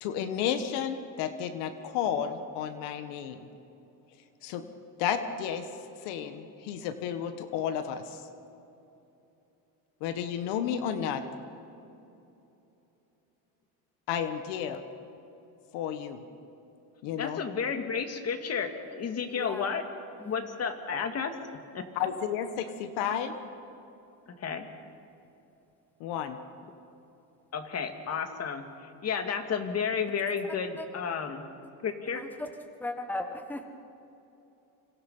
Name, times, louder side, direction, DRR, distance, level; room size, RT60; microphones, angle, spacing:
voice 1, 0.0-3.4 4.4-4.6 5.0-5.7 6.0-8.2 10.0-11.2 14.1-14.8 15.7-16.2 17.0-17.4 22.0-23.3 26.0-26.4, left 8 dB, 80° left, 9 dB, 1.8 m, -32 dB
voice 2, 17.2-19.8 20.2-21.4 21.7-21.9 24.3-24.6 27.5-31.4 31.8-32.2, left 6 dB, 35° left, 6 dB, 2.5 m, -32 dB
voice 3, 19.3-19.8 20.2-20.5 30.4-30.9 32.1-32.5 32.8-33.6, left 2 dB, 5° left, 6 dB, 1.4 m, -37 dB
28.0 x 26.0 x 5.7 m, 2.9 s
cardioid pair, 125°, 41 cm